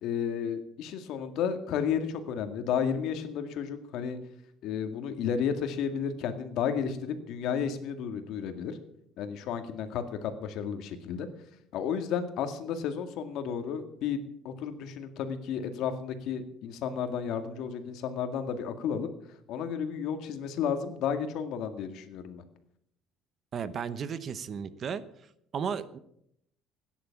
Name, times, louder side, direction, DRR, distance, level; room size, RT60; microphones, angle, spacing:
voice 1, 0.0-4.2 4.6-8.8 9.2-11.3 11.7-19.1 19.5-22.4, left 7 dB, 70° left, 8 dB, 2.0 m, -32 dB
voice 2, 23.5-25.0 25.5-26.0, right 7 dB, 40° right, 15 dB, 0.9 m, -34 dB
17.0 x 10.0 x 7.1 m, 0.73 s
cardioid pair, 150°, 0 cm